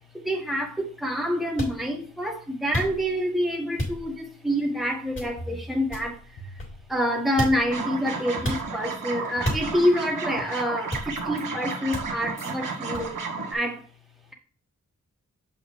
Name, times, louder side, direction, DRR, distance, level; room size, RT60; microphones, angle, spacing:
voice 1, 0.2-6.1 6.9-13.2 13.5-13.8, equal, ahead, 1.6 m, -27 dB
sound 1, 1.6-1.8 2.7-3.2 3.8-4.2 5.1-5.5 5.9-7.0 7.4-7.8 8.4-8.7 9.4-10.0 10.9-11.4 11.9-12.3 12.9-13.1, equal, 40° left, 3.6 m, -32 dB
sound 2, 5.4-6.1 6.4-7.0 7.4-7.9 8.4-8.5 9.4-9.5 10.4-10.5 11.4-11.5 12.4-12.5, equal, 80° left, 1.7 m, -42 dB
sound 3, 7.7-13.5, right 4 dB, 80° right, 1.4 m, -33 dB
7.0 x 5.8 x 3.3 m
wide cardioid pair, 105°, 32 cm